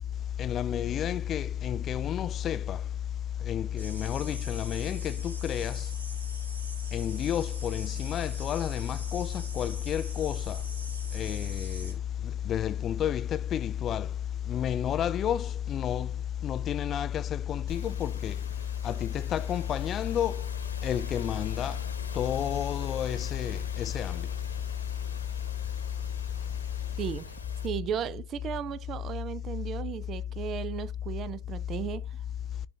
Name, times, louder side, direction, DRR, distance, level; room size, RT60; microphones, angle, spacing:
voice 1, 0.4-2.8 3.4-5.9 6.9-10.6 11.1-12.0 12.5-14.1 14.5-16.1 16.4-18.4 18.8-20.4 20.8-21.8 22.1-24.3, left 10 dB, 30° left, 0.3 m, -30 dB
sound 1, 3.8-11.9, right 1 dB, 85° right, 2.1 m, -45 dB
sound 2, 17.7-27.7, left 4 dB, 75° left, 1.4 m, -44 dB
voice 2, 27.0-27.3 27.6-32.1, right 9 dB, 30° right, 0.5 m, -35 dB
11.0 x 3.7 x 2.8 m
figure-of-eight pair, 90°, 0 cm